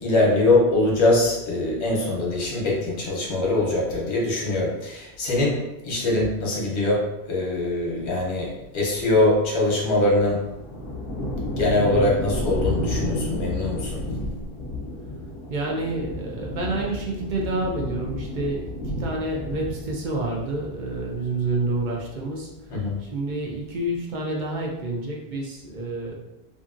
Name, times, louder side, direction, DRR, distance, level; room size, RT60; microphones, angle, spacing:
voice 1, 0.0-10.4 11.6-14.0 22.7-23.0, left 2 dB, 90° left, -2 dB, 1.1 m, -22 dB
sound 1, 9.4-22.2 22.5-23.2, left 1 dB, 60° left, 0.9 m, -32 dB
voice 2, 15.5-22.5 23.0-26.2, right 2 dB, 55° right, -1 dB, 0.6 m, -28 dB
2.7 x 2.6 x 2.4 m, 0.92 s
omnidirectional pair, 1.1 m